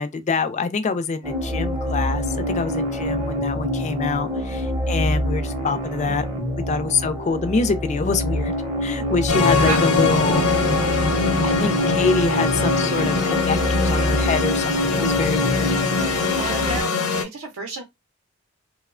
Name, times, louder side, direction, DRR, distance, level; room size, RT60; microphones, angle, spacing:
voice 1, 0.0-6.2 6.7-8.5 8.8-10.5 11.4-15.7, left 4 dB, 30° left, 0.3 m, -25 dB
sound 1, 1.2-16.8, equal, 15° right, 0.6 m, -25 dB
sound 2, 9.3-17.2, left 4 dB, 75° left, 0.7 m, -22 dB
voice 2, 9.5-9.9 16.3-16.9 17.2-17.8, right 2 dB, 75° right, 0.6 m, -30 dB
2.9 x 2.0 x 2.4 m
head